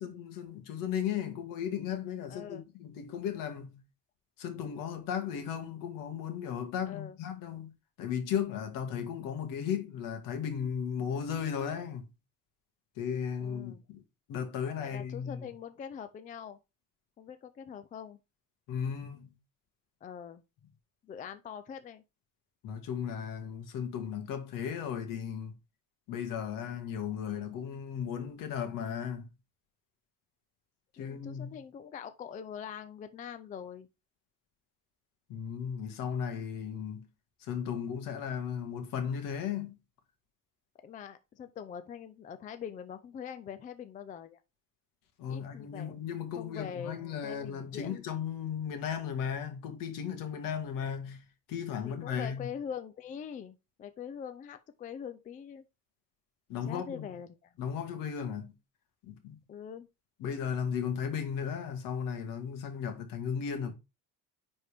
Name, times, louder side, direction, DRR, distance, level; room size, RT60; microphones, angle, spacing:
voice 1, 0.0-3.8 4.4-7.7 8.0-12.1 13.0-14.0 14.3-15.5 18.7-19.3 22.6-25.5 26.1-29.3 30.9-31.6 35.3-37.1 37.4-39.7 45.2-52.5 56.5-57.2 57.6-58.5 59.0-59.4 60.2-63.7, left 8 dB, 65° left, 2.0 m, -35 dB
voice 2, 2.3-2.7 6.8-7.2 13.4-13.8 14.8-16.6 17.2-18.2 20.0-20.4 21.0-22.0 31.0-33.9 40.8-44.4 45.3-46.0 46.4-48.0 51.8-55.6 56.7-57.5 59.5-59.9, left 8 dB, 25° left, 0.4 m, -43 dB
9.9 x 4.3 x 3.4 m
cardioid pair, 170°, 34 cm